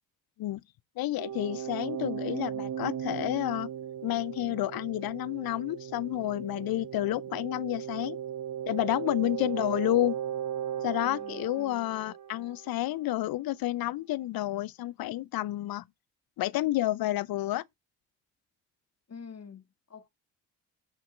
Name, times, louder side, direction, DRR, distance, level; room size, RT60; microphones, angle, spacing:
voice 1, 1.0-3.7 4.0-8.2 8.7-10.2 10.8-15.8 16.4-17.6, left 15 dB, 60° left, 0.5 m, -30 dB
sound 1, 1.2-12.8, right 9 dB, 50° right, 1.1 m, -37 dB
voice 2, 11.0-11.9 19.1-20.1, left 6 dB, 35° left, 1.8 m, -48 dB
11.0 x 5.8 x 3.2 m
hypercardioid pair, 40°, 42 cm